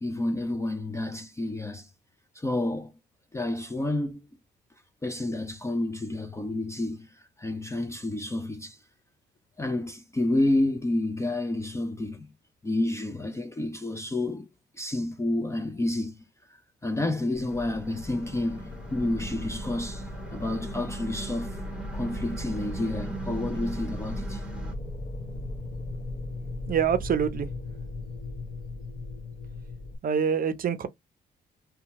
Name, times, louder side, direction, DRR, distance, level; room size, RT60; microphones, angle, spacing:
voice 1, 0.0-1.9 2.4-2.9 3.3-4.3 5.0-7.1 7.4-8.8 9.6-12.3 12.6-14.5 14.8-16.2 16.8-21.6 21.9-24.4, left 1 dB, 15° left, 0.5 m, -29 dB
sound 1, 17.3-30.0, left 2 dB, 40° left, 0.8 m, -37 dB
sound 2, 17.5-24.8, right 4 dB, 5° right, 1.0 m, -41 dB
voice 2, 26.7-27.5 30.0-30.9, right 7 dB, 45° right, 0.6 m, -25 dB
2.7 x 2.3 x 2.9 m
cardioid pair, 90°, 20 cm